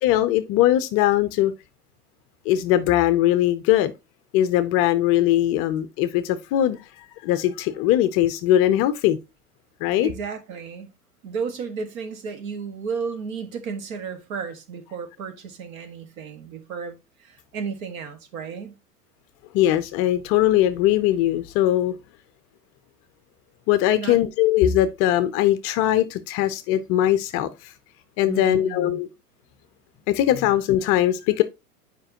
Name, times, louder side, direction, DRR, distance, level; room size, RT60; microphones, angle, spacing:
voice 1, 0.0-1.5 2.5-3.9 4.3-9.2 9.8-10.1 19.5-21.9 23.7-27.7 28.2-29.1 30.1-31.4, left 13 dB, 30° left, 0.5 m, -20 dB
voice 2, 10.0-10.9 11.2-18.8 23.9-24.2 28.2-29.0, right 5 dB, 60° right, 1.6 m, -33 dB
8.7 x 5.1 x 2.8 m
figure-of-eight pair, 95°, 46 cm